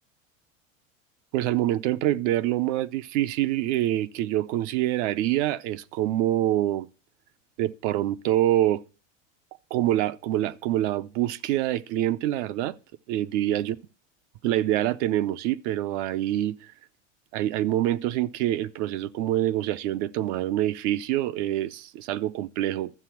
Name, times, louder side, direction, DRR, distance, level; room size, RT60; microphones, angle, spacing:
voice 1, 1.3-6.9 7.6-8.8 9.7-12.8 13.1-13.8 14.4-16.6 17.3-22.9, right 13 dB, 60° right, 0.8 m, -26 dB
12.0 x 7.6 x 5.9 m
supercardioid pair, 125°, 39 cm